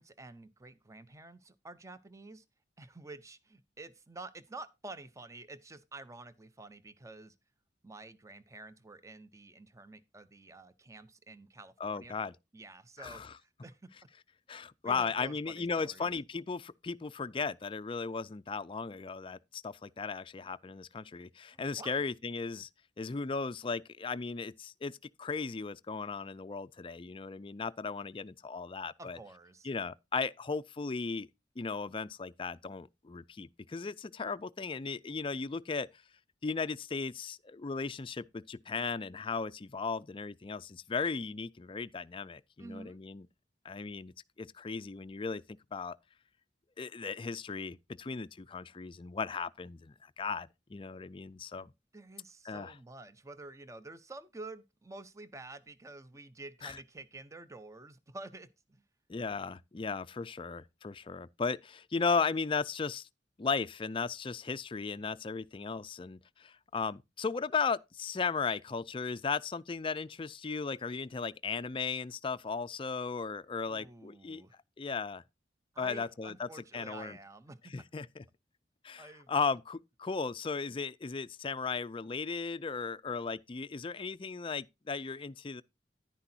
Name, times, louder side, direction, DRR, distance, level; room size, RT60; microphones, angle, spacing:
voice 1, 0.0-2.4 2.8-7.3 7.8-12.2 12.5-13.8 14.8-16.1 21.8-22.0 29.0-29.7 42.6-43.0 51.6-51.7 51.9-58.8 73.7-74.6 75.7-77.7 79.0-79.3, right 2 dB, 15° right, 0.7 m, -49 dB
voice 2, 11.8-12.4 13.0-13.4 14.5-22.7 23.0-29.2 29.6-31.3 31.6-35.9 36.4-43.3 43.6-44.1 44.4-45.4 45.7-46.0 46.8-51.7 52.4-52.7 56.6-56.8 59.1-63.1 63.4-74.4 74.8-75.2 75.8-77.2 77.7-78.2 78.8-85.6, left 4 dB, 30° left, 0.4 m, -36 dB
10.5 x 10.0 x 2.8 m
head